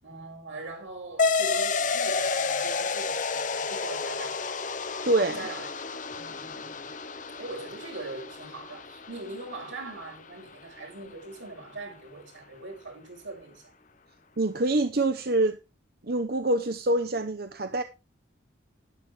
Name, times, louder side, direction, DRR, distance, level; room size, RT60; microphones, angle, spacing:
voice 1, 0.0-4.5 5.4-5.7 6.1-6.9 7.4-13.7, right 2 dB, 85° right, 7.0 m, -41 dB
sound 1, 1.2-10.2, left 4 dB, 40° left, 1.0 m, -31 dB
voice 2, 5.1-5.4 14.4-15.6 16.0-17.8, right 2 dB, 55° right, 0.8 m, -25 dB
11.5 x 11.0 x 3.4 m
head